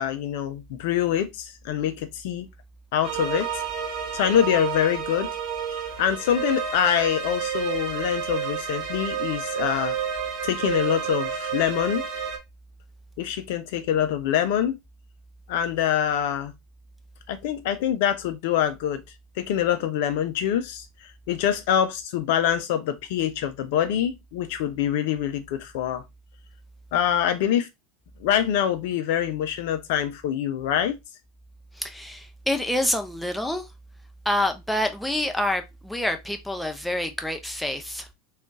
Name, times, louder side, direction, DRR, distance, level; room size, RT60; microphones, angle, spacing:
voice 1, 0.0-2.5 2.9-3.6 4.1-5.3 5.7-10.0 10.4-12.0 13.2-14.8 15.5-16.5 17.3-19.0 19.4-26.0 26.9-27.7 28.2-31.0, left 10 dB, 60° left, 0.5 m, -25 dB
sound 1, 3.0-12.4, right 7 dB, 45° right, 1.0 m, -30 dB
voice 2, 31.8-33.6 34.3-38.0, left 1 dB, 5° left, 0.7 m, -27 dB
3.6 x 2.4 x 3.8 m
figure-of-eight pair, 80°, 0 cm